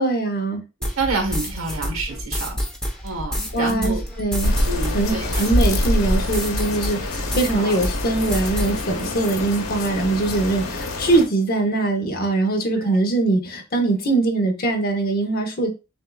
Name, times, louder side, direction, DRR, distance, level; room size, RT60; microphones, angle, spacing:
voice 1, 0.0-0.6 3.5-4.6 4.9-15.7, right 2 dB, 45° left, 0.9 m, -22 dB
sound 1, 0.8-7.5 7.8-8.8, equal, 5° left, 0.8 m, -28 dB
voice 2, 0.8-2.6 3.0-4.0 4.7-5.4 7.5-7.8 12.8-13.0, right 3 dB, 85° right, 1.3 m, -28 dB
sound 2, 4.4-11.2, left 1 dB, 80° left, 0.9 m, -25 dB
6.4 x 2.5 x 2.3 m
head